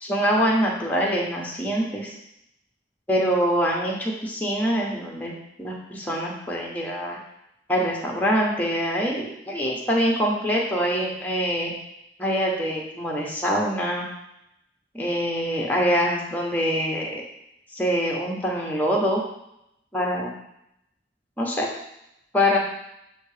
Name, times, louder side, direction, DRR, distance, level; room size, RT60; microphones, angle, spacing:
voice 1, 0.0-2.2 3.1-5.3 5.6-7.2 7.7-11.7 12.2-14.1 14.9-17.2 17.7-19.2 19.9-20.3 21.4-21.7 22.3-22.6, equal, 10° left, -2 dB, 1.1 m, -24 dB
7.4 x 2.8 x 5.0 m, 0.82 s
head